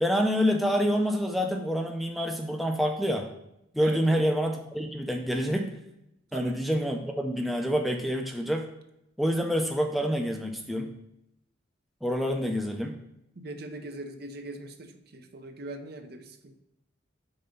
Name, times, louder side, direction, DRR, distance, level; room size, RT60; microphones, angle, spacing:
voice 1, 0.0-3.3 3.7-5.7 6.3-8.7 9.2-10.9 12.0-13.0, equal, ahead, 2 dB, 0.4 m, -27 dB
voice 2, 3.8-4.2 6.3-6.6 13.4-16.6, right 2 dB, 55° right, 7 dB, 0.6 m, -41 dB
5.5 x 3.9 x 5.1 m, 0.83 s
head